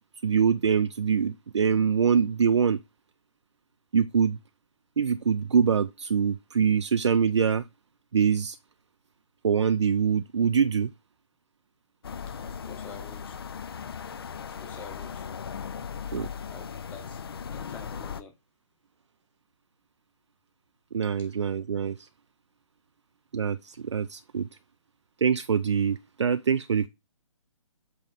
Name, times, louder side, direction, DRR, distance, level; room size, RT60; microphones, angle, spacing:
voice 1, 0.2-2.8 3.9-4.4 5.0-7.6 8.1-8.6 9.4-10.9 16.1-16.3 20.9-22.1 23.3-24.5 25.2-26.9, right 6 dB, 55° right, 0.4 m, -24 dB
sound 1, 12.0-18.2, left 7 dB, 45° left, 0.5 m, -38 dB
voice 2, 12.4-13.4 14.4-15.3 16.5-17.2 17.5-18.3 21.2-21.3, left 4 dB, 10° left, 1.0 m, -47 dB
7.7 x 3.4 x 3.6 m
figure-of-eight pair, 140°, 17 cm